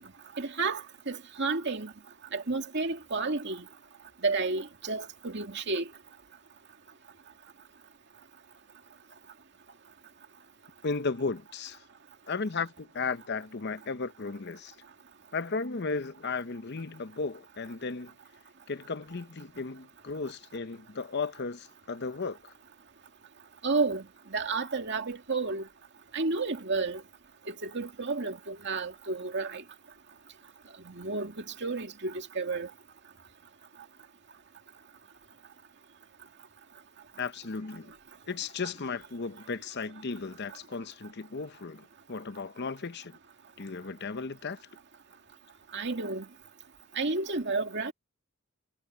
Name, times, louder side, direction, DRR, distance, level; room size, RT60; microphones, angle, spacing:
voice 1, 0.4-1.9 2.3-3.6 4.2-5.9 23.6-24.0 24.3-25.6 26.1-27.0 27.5-29.6 30.9-32.7 45.7-46.3 47.0-47.9, right 3 dB, 55° right, 2.3 m, -31 dB
voice 2, 10.8-11.8 12.3-14.7 15.3-18.1 18.7-22.5 37.2-37.9 38.3-43.2 43.6-44.6, left 4 dB, 55° left, 0.8 m, -35 dB
head